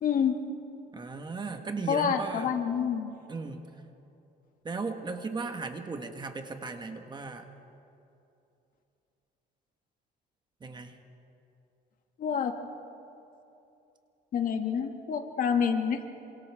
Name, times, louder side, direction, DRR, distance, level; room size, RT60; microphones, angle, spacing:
voice 1, 0.0-0.4 1.9-3.1 12.2-12.6 14.3-16.0, left 7 dB, 55° left, 4 dB, 2.1 m, -27 dB
voice 2, 0.9-2.5 3.3-3.7 4.6-7.5 10.6-10.9, right 4 dB, 25° right, 6 dB, 1.5 m, -36 dB
27.5 x 26.5 x 3.6 m, 2.8 s
cardioid pair, 110°, 17 cm